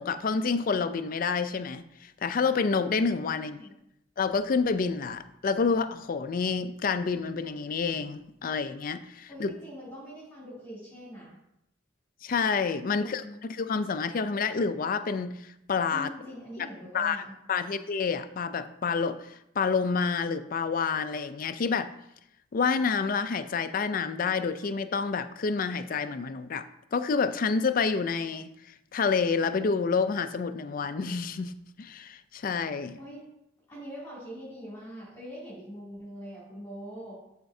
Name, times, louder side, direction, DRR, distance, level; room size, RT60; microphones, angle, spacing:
voice 1, 0.0-3.6 4.2-9.5 12.2-13.2 13.5-16.1 16.6-16.7 16.9-17.2 17.5-21.9 22.5-26.6 26.9-28.5 28.9-33.0, left 5 dB, 45° left, 11 dB, 0.4 m, -28 dB
voice 2, 3.4-3.7 9.3-11.4 12.8-13.4 15.9-17.3 33.0-33.2 33.7-37.1, equal, 10° left, -9 dB, 2.5 m, -43 dB
12.5 x 4.3 x 2.7 m, 0.81 s
head